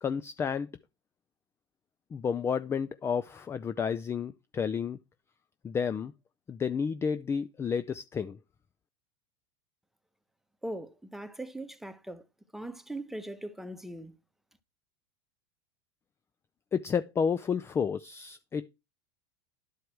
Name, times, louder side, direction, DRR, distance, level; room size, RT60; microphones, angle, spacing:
voice 1, 0.0-0.7 2.1-5.0 5.6-6.1 6.5-8.4 16.7-18.7, left 6 dB, 20° left, 0.4 m, -31 dB
voice 2, 10.6-12.3 12.5-14.2, right 1 dB, ahead, 0.9 m, -40 dB
11.5 x 4.7 x 4.6 m
supercardioid pair, 115°, 14 cm